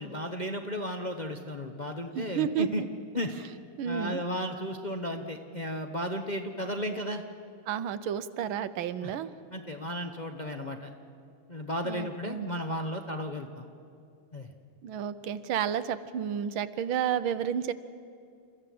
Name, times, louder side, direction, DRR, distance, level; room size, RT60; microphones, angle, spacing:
voice 1, 0.0-2.8 3.1-3.3 3.8-7.2 9.0-9.1 9.5-10.9 11.5-13.7 14.3-14.5, equal, 35° left, 4 dB, 0.8 m, -34 dB
voice 2, 2.1-2.9 3.8-4.2 7.7-9.3 11.8-12.5 14.8-17.7, right 9 dB, 85° right, 13 dB, 1.6 m, -31 dB
29.0 x 14.5 x 7.7 m, 2.4 s
omnidirectional pair, 2.2 m